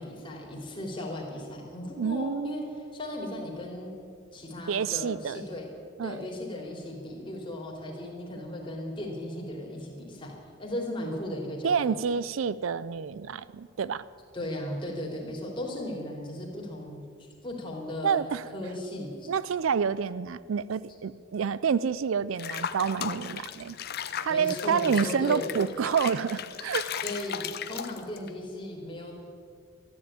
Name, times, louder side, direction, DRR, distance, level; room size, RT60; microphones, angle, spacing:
voice 1, 0.0-3.9 4.3-5.7 6.0-10.3 10.6-12.0 14.3-17.0 17.4-18.2 18.5-19.3 24.3-25.5 27.0-27.4 27.7-29.1, left 1 dB, 25° left, -1 dB, 3.2 m, -36 dB
voice 2, 2.0-2.6 4.7-5.4 6.0-6.2 11.6-14.0 18.0-18.5 19.3-23.8 24.2-26.9, right 6 dB, 70° right, 17 dB, 0.4 m, -28 dB
Water / Bathtub (filling or washing), 22.4-28.3, left 8 dB, 50° left, 0.7 m, -36 dB
13.5 x 11.5 x 8.8 m, 2.2 s
head